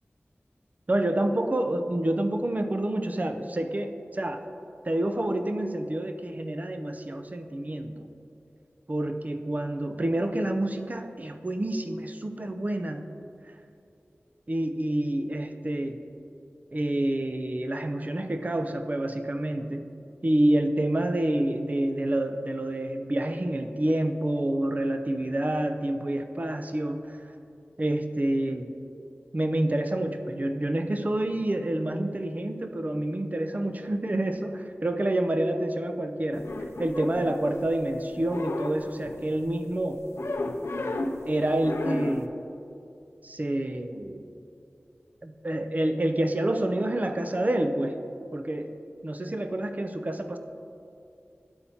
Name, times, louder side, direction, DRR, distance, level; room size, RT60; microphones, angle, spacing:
voice 1, 0.9-4.5 4.8-8.1 8.9-13.1 14.5-16.0 16.7-19.9 20.2-27.3 27.8-28.7 29.3-36.5 36.8-40.0 41.3-42.3 43.2-44.3 45.2-48.0 48.3-48.8 49.0-50.4, right 1 dB, 35° right, 7 dB, 0.5 m, -28 dB
sound 1, 36.3-37.9 38.1-39.4 40.2-41.3 41.6-42.3, left 2 dB, 75° left, 0.5 m, -33 dB
11.5 x 4.2 x 4.2 m, 2.6 s
wide cardioid pair, 45°, 4 cm